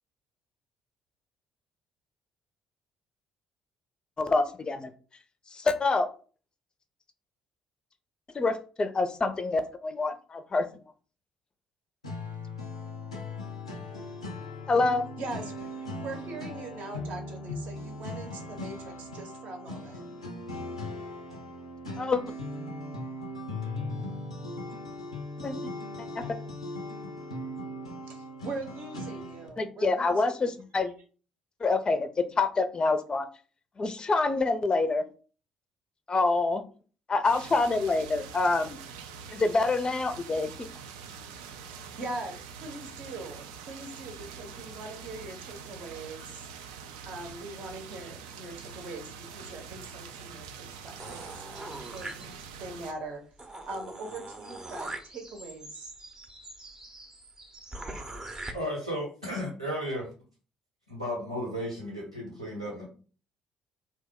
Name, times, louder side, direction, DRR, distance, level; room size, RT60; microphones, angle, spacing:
voice 1, 4.2-4.8 5.5-6.1 8.3-10.7 14.7-15.0 22.0-22.2 25.4-25.6 26.2-26.3 29.6-30.9 31.6-33.3 33.8-35.0 36.1-36.6 37.1-38.8 39.3-40.7, left 3 dB, 25° left, 10 dB, 0.4 m, -26 dB
sound 1, 12.0-29.5, left 2 dB, 85° left, 0.4 m, -39 dB
voice 2, 15.2-20.1 28.1-30.5 41.6-46.5 47.0-53.3 53.6-55.9, right 2 dB, 55° right, 3 dB, 0.8 m, -42 dB
sound 2, 37.2-52.9, right 6 dB, 70° right, 0.3 m, -45 dB
sound 3, 51.0-52.7 53.1-53.2 53.4-58.5, right 2 dB, 20° right, 0.6 m, -42 dB
voice 3, 58.5-60.1 60.9-63.0, equal, 90° right, -4 dB, 0.9 m, -34 dB
2.9 x 2.1 x 3.5 m, 0.38 s
figure-of-eight pair, 50°, 3 cm